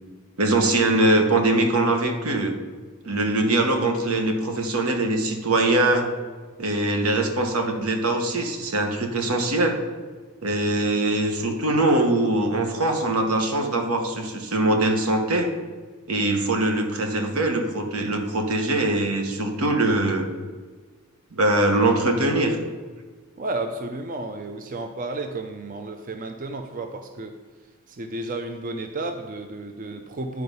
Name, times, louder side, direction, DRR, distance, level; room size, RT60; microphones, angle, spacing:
voice 1, 0.4-2.6 3.0-6.1 6.6-9.8 10.4-15.5 16.1-20.3 21.3-22.6, right 2 dB, 80° right, 4 dB, 1.1 m, -22 dB
voice 2, 23.4-27.3 27.9-30.4, right 2 dB, 40° right, 6 dB, 0.5 m, -32 dB
9.6 x 4.7 x 5.4 m, 1.5 s
head